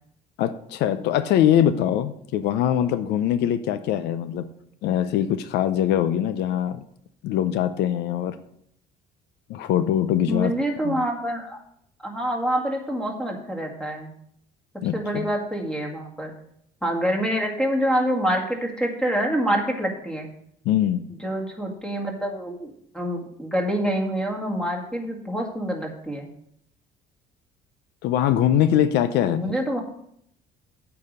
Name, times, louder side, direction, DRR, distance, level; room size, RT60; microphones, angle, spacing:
voice 1, 0.4-4.5 4.8-6.8 7.2-8.4 9.5-10.5 10.8-11.0 14.8-15.3 20.6-21.1 28.0-29.5, left 10 dB, 85° left, 0.5 m, -22 dB
voice 2, 10.3-11.6 12.0-14.1 14.9-16.3 16.8-20.3 21.2-26.3 29.3-29.8, equal, 5° left, 2.0 m, -26 dB
8.6 x 4.8 x 6.6 m
cardioid pair, 110°, 17 cm